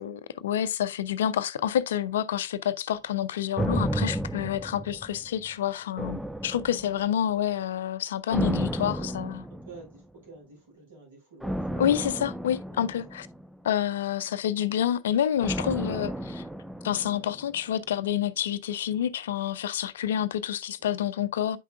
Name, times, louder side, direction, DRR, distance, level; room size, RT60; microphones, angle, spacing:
voice 1, 0.0-9.4 11.8-13.3 13.6-16.4 16.8-21.6, left 10 dB, 60° left, 0.5 m, -28 dB
sound 1, 3.6-5.5 6.0-7.2 8.3-10.0 11.4-13.8 15.4-17.6 17.9-18.0, right 1 dB, ahead, 0.4 m, -32 dB
voice 2, 9.5-11.7 12.7-12.9 16.0-16.3 20.8-21.0, right 3 dB, 60° right, 4.5 m, -49 dB
9.0 x 5.8 x 2.3 m
figure-of-eight pair, 90°, 0 cm